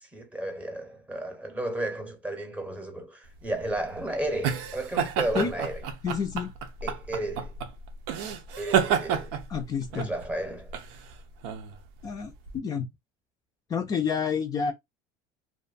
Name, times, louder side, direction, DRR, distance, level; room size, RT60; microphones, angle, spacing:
voice 1, 0.0-5.8 6.8-7.5 8.6-9.3 9.9-10.7, right 1 dB, 10° right, 0.8 m, -33 dB
sound 1, 3.4-12.6, right 8 dB, 85° right, 0.6 m, -30 dB
voice 2, 6.0-6.5 9.5-10.1 12.0-12.9 13.7-14.7, left 6 dB, 30° left, 0.4 m, -29 dB
2.5 x 2.2 x 2.4 m
cardioid pair, 125°, 12 cm